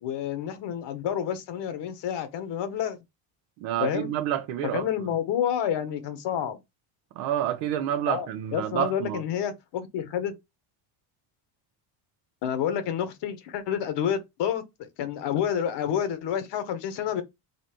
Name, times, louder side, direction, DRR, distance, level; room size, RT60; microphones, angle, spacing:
voice 1, 0.0-3.0 3.8-4.1 4.7-6.6 8.1-10.3 12.4-14.6 15.0-17.2, left 9 dB, 60° left, 1.2 m, -29 dB
voice 2, 3.6-4.9 7.1-9.2, right 11 dB, 80° right, 1.0 m, -28 dB
4.0 x 2.9 x 4.4 m
cardioid pair, 120°, 47 cm